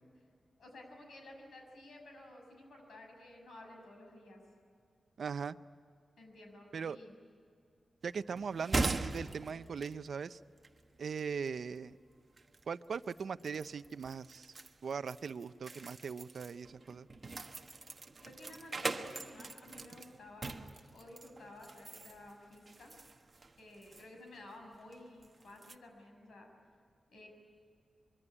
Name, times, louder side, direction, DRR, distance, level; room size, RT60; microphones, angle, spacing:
voice 1, 0.6-4.4 6.2-7.1 18.2-20.5 20.9-22.9 23.6-26.5 27.1-27.3, left 1 dB, 85° left, 2 dB, 6.7 m, -53 dB
voice 2, 5.2-5.6 6.7-7.0 8.0-10.4 11.0-12.0 12.7-14.5 14.8-17.1, right 6 dB, 65° right, 13 dB, 0.6 m, -39 dB
sound 1, 8.0-25.7, right 3 dB, 30° right, 1.2 m, -42 dB
25.0 x 23.5 x 10.0 m, 2.3 s
wide cardioid pair, 135°, 0 cm